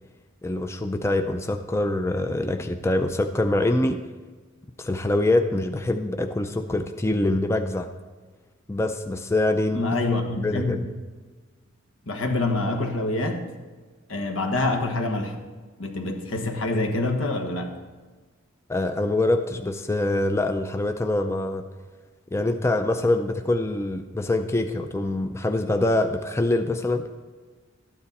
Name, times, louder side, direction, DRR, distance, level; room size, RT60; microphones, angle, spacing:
voice 1, 0.4-4.0 4.8-7.9 8.7-9.8 10.4-10.9 18.7-21.6 22.3-27.0, left 2 dB, 15° left, 7 dB, 0.4 m, -24 dB
voice 2, 9.7-10.8 12.1-13.4 14.1-15.4 15.8-17.8, left 2 dB, 80° left, 4 dB, 1.4 m, -26 dB
13.0 x 9.7 x 4.1 m, 1.4 s
head